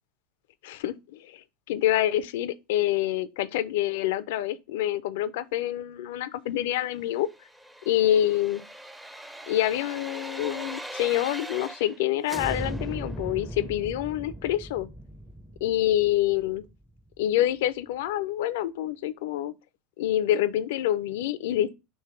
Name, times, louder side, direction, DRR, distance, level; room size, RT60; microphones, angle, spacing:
voice 1, 0.6-7.3 7.9-8.6 9.5-14.9 15.6-16.6 17.2-19.5 20.0-21.7, left 13 dB, 75° left, 0.4 m, -27 dB
sound 1, 7.3-12.0 12.3-17.1 17.5-17.6, right 1 dB, 5° right, 0.5 m, -39 dB
3.3 x 3.2 x 4.3 m
hypercardioid pair, 90°, 0 cm